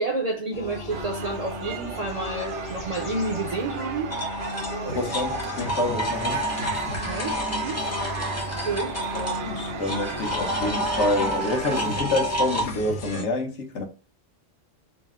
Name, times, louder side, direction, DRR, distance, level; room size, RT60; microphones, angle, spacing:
voice 1, 0.0-4.2 6.9-7.8 8.7-9.0, right 2 dB, 45° right, 0.5 m, -30 dB
sound 1, 0.5-13.2, left 2 dB, 50° left, 0.9 m, -36 dB
sound 2, 0.9-12.0, right 7 dB, 75° right, 0.9 m, -35 dB
sound 3, 4.1-12.7, equal, 15° left, 0.6 m, -30 dB
voice 2, 4.9-6.4 9.1-13.9, left 2 dB, 70° left, 1.1 m, -27 dB
4.0 x 2.1 x 3.5 m
omnidirectional pair, 1.2 m